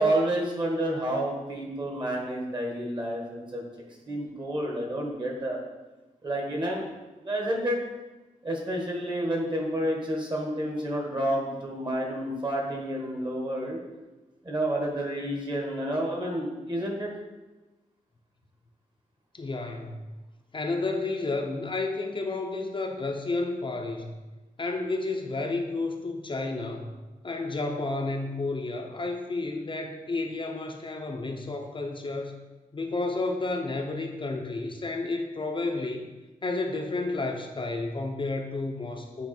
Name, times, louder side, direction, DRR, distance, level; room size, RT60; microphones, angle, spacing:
voice 1, 0.0-3.6 4.0-5.6 6.2-6.8 7.2-7.8 8.4-13.8 14.4-17.1, right 1 dB, 35° right, -1 dB, 1.5 m, -29 dB
voice 2, 19.3-20.1 20.5-24.1 24.6-26.9 27.2-32.4 32.7-36.1 36.4-39.3, left 3 dB, 35° left, 2 dB, 0.6 m, -31 dB
8.2 x 3.1 x 4.3 m, 1.1 s
wide cardioid pair, 100°, 14 cm